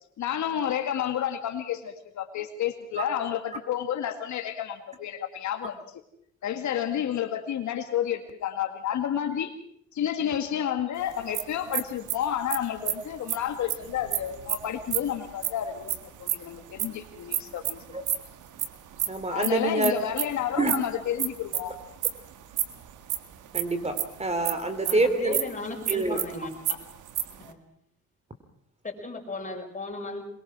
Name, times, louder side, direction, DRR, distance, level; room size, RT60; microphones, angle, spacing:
voice 1, 0.2-6.0 6.4-9.5 9.9-18.0 19.3-21.8, left 10 dB, 70° left, 6 dB, 2.1 m, -30 dB
sound 1, 11.1-16.9 17.3-24.5 24.8-24.9 25.2-25.4 25.7-27.5, right 11 dB, 80° right, 1.7 m, -30 dB
voice 2, 19.1-19.9 20.6-20.7 23.5-25.3 25.9-26.2, right 2 dB, 20° right, 9 dB, 3.0 m, -26 dB
voice 3, 24.8-26.5 27.4-27.7 28.8-30.3, left 2 dB, 25° left, 2 dB, 5.6 m, -36 dB
23.0 x 22.0 x 6.2 m, 0.69 s
cardioid pair, 90°, 30 cm